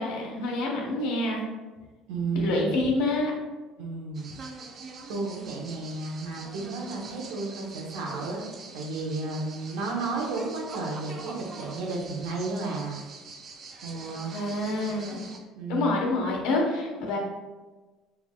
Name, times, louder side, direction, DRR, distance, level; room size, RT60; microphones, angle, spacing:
voice 1, 0.0-1.5 2.3-3.3 14.3-15.3 15.7-17.2, left 2 dB, 75° left, -1 dB, 1.0 m, -27 dB
voice 2, 2.1-2.7 3.8-4.3 5.1-8.4 8.7-13.0 13.8-14.3 15.6-16.0, right 3 dB, 85° right, -1 dB, 0.8 m, -32 dB
sound 1, 4.1-15.4, right 3 dB, 45° right, 0.5 m, -44 dB
5.5 x 2.4 x 2.2 m, 1.2 s
supercardioid pair, 95°, 0 cm